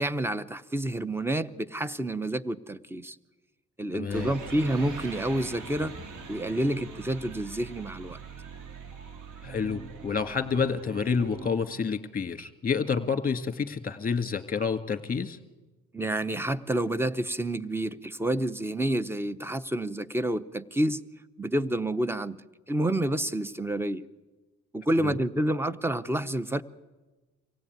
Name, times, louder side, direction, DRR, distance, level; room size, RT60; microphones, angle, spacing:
voice 1, 0.0-3.2 3.8-5.9 6.3-8.2 15.9-21.0 21.4-22.4 22.7-24.1 24.7-26.6, right 1 dB, 10° right, 16 dB, 0.8 m, -29 dB
voice 2, 3.9-4.3 9.4-15.4 25.0-25.2, left 5 dB, 30° left, 8 dB, 1.9 m, -29 dB
sound 1, 4.1-11.5, right 5 dB, 80° right, 2.1 m, -42 dB
24.5 x 17.0 x 9.3 m, 1.2 s
cardioid pair, 90°, 30 cm